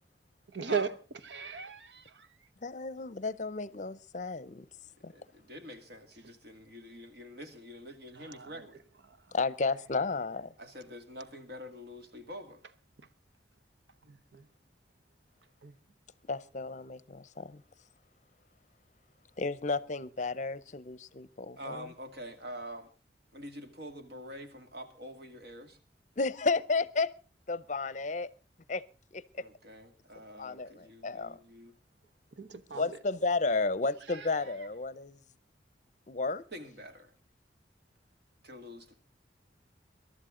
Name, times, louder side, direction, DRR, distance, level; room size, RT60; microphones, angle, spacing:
voice 1, 0.5-0.9 1.3-2.3 8.2-8.6 14.1-14.4 15.6-15.7 32.4-32.9 34.1-34.3, right 5 dB, 90° right, 0.9 m, -37 dB
voice 2, 2.6-4.7 5.0-5.1 9.3-10.5 16.3-17.6 19.4-21.9 26.2-27.1 27.5-28.3 28.7-28.8 29.1-29.5 30.4-31.4 32.7-35.2 36.1-36.4, left 3 dB, 45° left, 0.6 m, -32 dB
voice 3, 5.1-8.8 10.6-12.7 21.6-22.9 23.3-25.8 29.4-31.7 36.5-37.1 38.4-38.9, equal, 60° right, 2.2 m, -46 dB
22.0 x 12.0 x 3.8 m
head